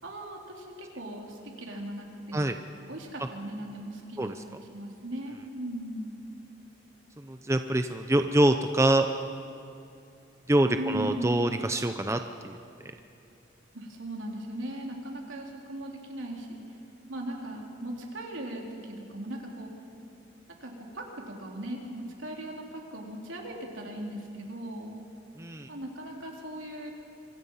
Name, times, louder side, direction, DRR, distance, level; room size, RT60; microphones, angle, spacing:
voice 1, 0.0-2.5 2.9-6.1 10.8-11.4 13.7-16.8 17.1-19.7 20.6-25.0 25.7-26.9, right 1 dB, 75° right, 0 dB, 3.8 m, -38 dB
voice 2, 7.3-9.1 10.5-12.6 25.4-25.7, right 1 dB, 15° right, 7 dB, 0.6 m, -25 dB
26.0 x 24.0 x 5.7 m, 2.7 s
head